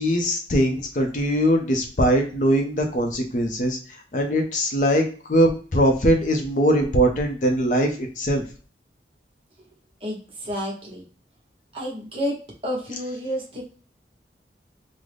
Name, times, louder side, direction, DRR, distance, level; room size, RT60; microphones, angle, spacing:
voice 1, 0.0-8.4, equal, 45° left, 3 dB, 0.5 m, -21 dB
voice 2, 10.0-11.0 11.7-12.4 12.6-13.6, equal, 30° right, -2 dB, 0.9 m, -30 dB
3.7 x 2.1 x 3.3 m, 0.40 s
head